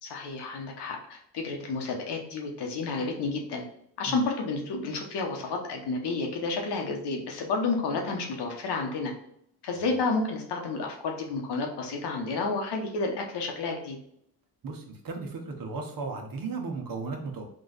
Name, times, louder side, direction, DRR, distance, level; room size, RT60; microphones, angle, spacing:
voice 1, 0.0-3.6 4.0-9.1 9.6-14.0, left 3 dB, 75° left, 2 dB, 1.1 m, -31 dB
voice 2, 14.6-17.4, right 4 dB, 55° right, 3 dB, 1.0 m, -35 dB
3.9 x 2.5 x 3.9 m, 0.71 s
cardioid pair, 80°, 41 cm